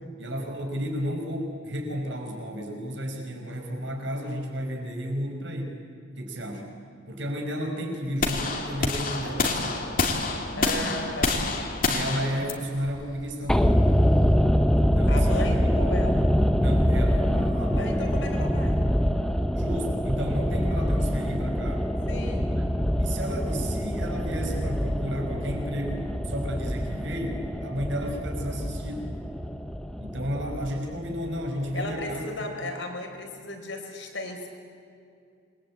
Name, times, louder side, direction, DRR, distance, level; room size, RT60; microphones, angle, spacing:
voice 1, 0.2-5.8 6.2-6.7 7.1-9.9 10.5-11.0 11.7-13.9 14.8-15.6 16.6-18.0 19.5-21.9 22.5-22.7 23.0-29.2 30.0-32.2 32.5-32.7, equal, 70° right, 2 dB, 5.3 m, -33 dB
sound 1, 8.2-14.3, left 3 dB, 45° left, 2.8 m, -28 dB
voice 2, 10.5-11.3 15.1-16.3 17.8-18.8 22.1-22.4 31.7-34.5, left 2 dB, 65° left, 3 dB, 4.7 m, -35 dB
sound 2, 13.5-31.7 31.9-32.0, equal, 5° left, 1.0 m, -25 dB
27.0 x 22.5 x 8.8 m, 2.5 s
head